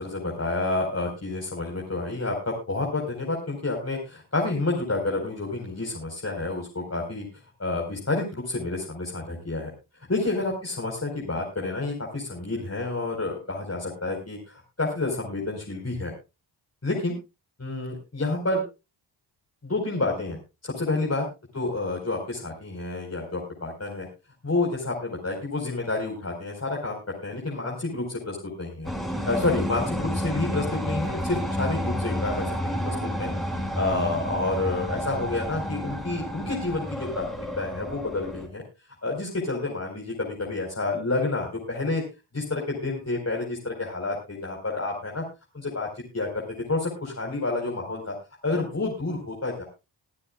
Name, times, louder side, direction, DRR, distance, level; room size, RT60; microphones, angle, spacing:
voice 1, 0.0-7.3 7.6-9.7 10.1-16.1 16.8-17.1 17.6-18.6 19.6-21.3 21.5-24.1 24.4-28.9 29.3-38.6 39.0-42.0 42.3-45.2 45.5-45.9 46.1-46.4 46.7-48.2 48.4-49.7, left 2 dB, 30° left, 0 dB, 4.8 m, -29 dB
sound 1, 28.8-38.5, equal, ahead, 5.3 m, -30 dB
23.0 x 9.9 x 2.4 m, 0.27 s
cardioid pair, 50°, 50 cm